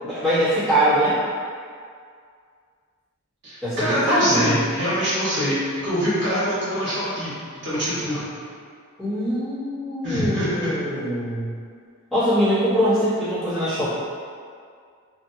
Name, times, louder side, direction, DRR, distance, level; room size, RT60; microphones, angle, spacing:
voice 1, 0.0-1.2 3.6-4.6 9.0-11.5 12.1-13.9, equal, ahead, -17 dB, 1.2 m, -22 dB
voice 2, 3.4-7.3 7.6-8.3 10.0-10.7, equal, 55° right, -12 dB, 1.3 m, -24 dB
2.9 x 2.5 x 2.7 m, 2.2 s
head